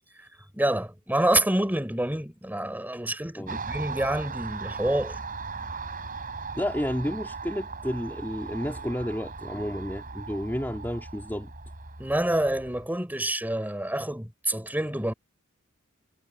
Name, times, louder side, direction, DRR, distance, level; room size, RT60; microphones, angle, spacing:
voice 1, 0.5-5.2 12.0-15.1, right 1 dB, 10° right, 4.2 m, -27 dB
Car passing by, 3.5-12.9, right 4 dB, 40° right, 4.4 m, -38 dB
voice 2, 6.6-11.5, equal, 10° left, 2.9 m, -31 dB
head